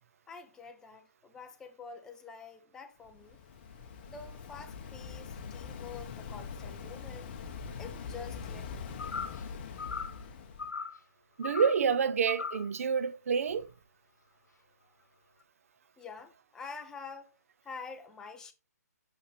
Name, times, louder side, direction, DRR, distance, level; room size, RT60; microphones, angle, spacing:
voice 1, 0.3-3.4 4.1-7.3 7.8-8.7 16.0-17.4 17.6-18.5, left 5 dB, 5° left, 0.5 m, -47 dB
Waves surf, 3.0-10.7, left 6 dB, 35° left, 0.8 m, -43 dB
sound 1, 9.0-9.4 9.8-10.2 10.6-11.0 11.4-11.8 12.3-12.7, left 5 dB, 85° left, 0.9 m, -38 dB
voice 2, 11.4-13.7, right 6 dB, 55° right, 0.6 m, -28 dB
6.1 x 5.6 x 3.3 m
hypercardioid pair, 155°, 9 cm